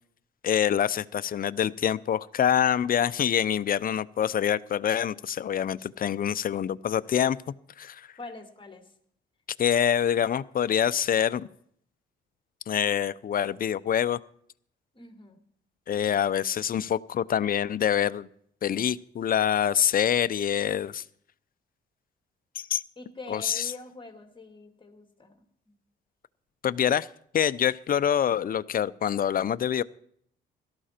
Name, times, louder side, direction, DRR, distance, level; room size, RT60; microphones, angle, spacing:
voice 1, 0.4-7.4 7.8-8.1 9.6-11.5 12.7-14.2 15.9-18.3 18.6-21.0 22.6-22.8 23.3-23.7 26.6-27.1 27.3-29.8, left 9 dB, 45° left, 16 dB, 0.6 m, -25 dB
voice 2, 8.2-9.0 14.9-15.4 23.0-25.8, left 3 dB, 25° left, 6 dB, 2.2 m, -45 dB
17.0 x 13.0 x 4.4 m, 0.66 s
cardioid pair, 90°, 20 cm